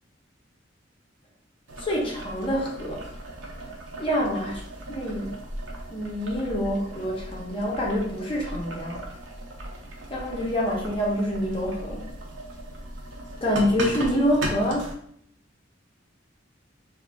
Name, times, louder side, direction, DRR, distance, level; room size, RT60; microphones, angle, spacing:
Boiling, 1.7-14.9, right 1 dB, 80° right, 0.6 m, -37 dB
voice 1, 1.8-3.0 4.0-4.5 4.9-5.3 5.9-9.0 10.1-12.0 13.4-14.9, equal, 30° left, -3 dB, 0.6 m, -26 dB
3.0 x 2.5 x 2.2 m, 0.67 s
head